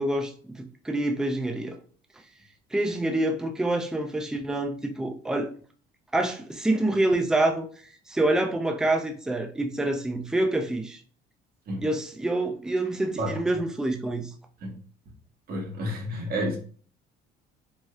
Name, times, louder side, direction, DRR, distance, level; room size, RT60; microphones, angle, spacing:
voice 1, 0.0-1.8 2.7-5.5 6.1-7.7 8.1-11.0 11.8-14.3, right 1 dB, 5° right, 4 dB, 0.4 m, -26 dB
voice 2, 15.5-16.6, equal, 50° right, 0 dB, 1.2 m, -30 dB
3.2 x 2.7 x 2.3 m, 0.43 s
cardioid pair, 120°, 19 cm